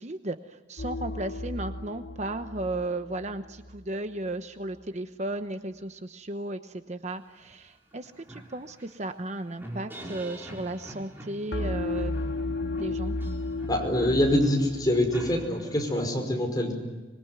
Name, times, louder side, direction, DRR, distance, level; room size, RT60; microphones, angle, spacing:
voice 1, 0.0-12.1 12.7-13.1, right 2 dB, 40° right, 8 dB, 1.0 m, -35 dB
sound 1, 0.8-3.9 11.5-15.5, left 2 dB, 65° left, 1.0 m, -34 dB
sound 2, 7.5-7.6 7.9-16.0, right 1 dB, 15° right, 5.9 m, -43 dB
voice 2, 13.7-16.7, left 1 dB, 20° left, 2 dB, 5.5 m, -25 dB
26.0 x 22.0 x 9.6 m, 1.2 s
head